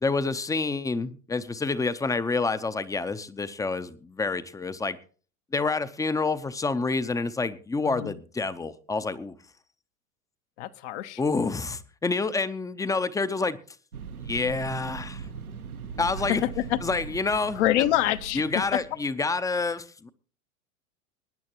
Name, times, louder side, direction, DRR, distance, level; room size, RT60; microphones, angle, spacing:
voice 1, 0.0-5.0 5.5-9.3 11.2-13.6 14.2-15.3 16.0-16.4 16.8-17.9 18.3-20.1, left 3 dB, 10° left, 13 dB, 0.7 m, -28 dB
voice 2, 10.6-11.2 16.3-16.8 17.6-18.4, left 14 dB, 55° left, 10 dB, 1.0 m, -26 dB
sound 1, 13.9-19.2, right 6 dB, 85° right, 1.3 m, -39 dB
23.5 x 10.0 x 3.0 m, 0.40 s
figure-of-eight pair, 95°, 42 cm